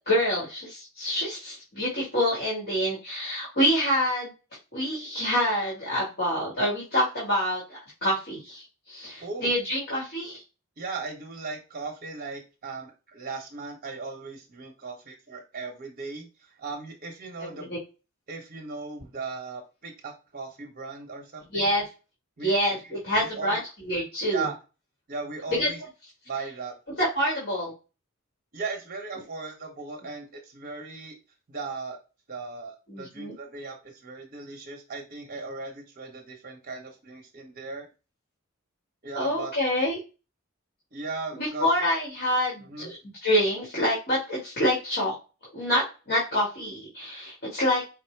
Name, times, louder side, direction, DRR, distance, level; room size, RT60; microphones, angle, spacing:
voice 1, 0.1-4.3 4.7-10.4 17.4-17.6 21.5-21.8 22.4-24.5 25.5-25.7 27.0-27.7 32.9-33.3 39.2-40.0 41.3-45.2 45.5-47.8, equal, 50° left, -5 dB, 1.8 m, -27 dB
voice 2, 9.2-9.5 10.8-17.7 18.3-21.7 22.4-22.5 22.8-22.9 23.2-23.6 24.3-24.6 25.1-25.8 26.3-26.7 28.5-31.2 31.5-32.0 32.3-37.9 39.0-39.5 40.9-41.7 42.6-42.9, right 4 dB, 45° right, 2 dB, 0.9 m, -37 dB
4.9 x 2.0 x 4.5 m, 0.30 s
head